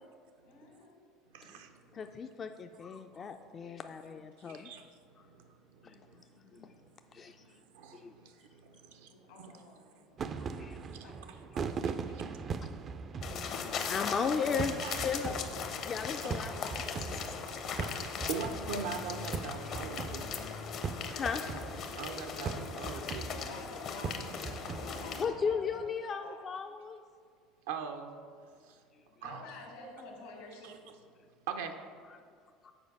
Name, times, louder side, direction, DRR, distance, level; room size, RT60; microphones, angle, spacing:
voice 1, 0.4-1.0 9.1-9.8 10.1-12.2 18.1-18.7 23.2-26.5 29.2-30.8, left 2 dB, 80° left, 0 dB, 1.8 m, -50 dB
voice 2, 1.3-1.7 4.6-4.8 7.7-8.3 8.9-9.1 9.4-9.5 14.8-15.0 17.8-20.2 22.0-23.3 27.7-28.1 29.2-29.4 31.5-31.7, right 6 dB, 80° right, 6 dB, 0.6 m, -40 dB
voice 3, 1.9-4.7 5.8-6.0 6.5-6.7 7.1-7.4 7.9-8.1 10.4-10.9 13.2-15.4 15.8-17.4 19.6-19.8 21.1-21.4 22.9-23.0 25.2-27.0 32.1-32.2 32.6-32.7, left 6 dB, 35° left, 6 dB, 0.3 m, -36 dB
sound 1, 10.2-25.9, right 5 dB, 40° right, 0.4 m, -41 dB
sound 2, 13.2-25.2, left 6 dB, 55° left, 0.7 m, -39 dB
7.0 x 4.5 x 5.3 m, 2.1 s
hypercardioid pair, 85°, 0 cm